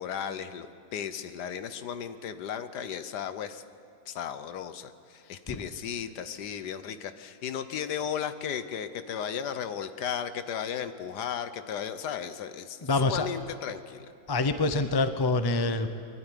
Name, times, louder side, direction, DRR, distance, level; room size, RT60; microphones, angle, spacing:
voice 1, 0.0-3.6 4.1-14.1, left 8 dB, 70° left, 11 dB, 1.4 m, -35 dB
voice 2, 12.8-13.3 14.3-15.9, left 3 dB, 30° left, 10 dB, 0.4 m, -26 dB
23.0 x 12.5 x 10.0 m, 2.5 s
omnidirectional pair, 1.9 m